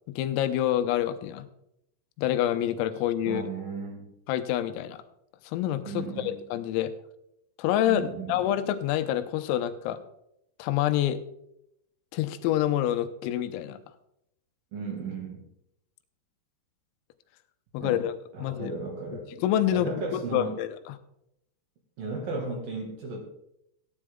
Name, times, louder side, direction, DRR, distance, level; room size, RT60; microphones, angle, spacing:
voice 1, 0.2-1.4 2.2-3.4 4.3-5.0 5.4-6.9 7.6-10.0 10.6-11.2 12.1-13.8 17.7-18.7 19.4-20.8, left 12 dB, 85° left, 10 dB, 3.5 m, -27 dB
voice 2, 3.2-4.1 5.8-6.4 7.8-8.5 14.7-15.4 17.8-18.0 18.3-19.3 19.7-20.6 22.0-23.2, right 4 dB, 55° right, 0 dB, 3.0 m, -35 dB
15.0 x 10.0 x 3.6 m, 0.79 s
omnidirectional pair, 5.9 m